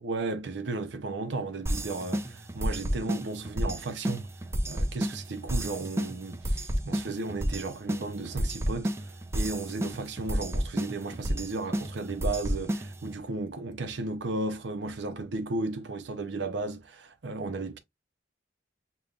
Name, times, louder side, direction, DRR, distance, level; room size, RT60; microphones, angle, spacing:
voice 1, 0.0-4.3 4.7-17.8, right 3 dB, 75° right, 0.6 m, -34 dB
sound 1, 1.7-13.2, equal, 15° right, 0.4 m, -32 dB
6.6 x 2.3 x 2.4 m
head